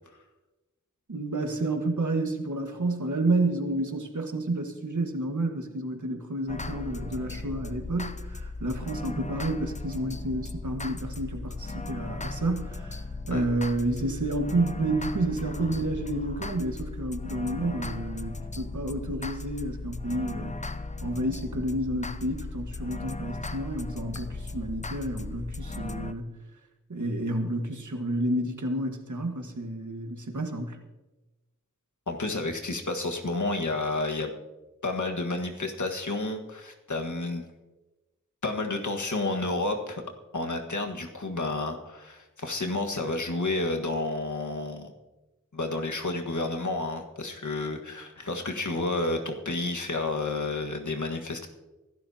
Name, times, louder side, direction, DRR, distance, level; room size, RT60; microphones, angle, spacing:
voice 1, 1.1-20.6 21.0-26.3 26.9-30.8, right 2 dB, 75° right, 4 dB, 1.6 m, -30 dB
sound 1, 6.5-26.1, left 3 dB, 25° left, 0.5 m, -37 dB
voice 2, 32.1-34.3 34.8-37.4 38.4-40.0 40.3-44.9 45.5-51.5, left 2 dB, 70° left, 3 dB, 1.6 m, -30 dB
24.0 x 12.0 x 2.8 m, 1.1 s
wide cardioid pair, 60°, 30 cm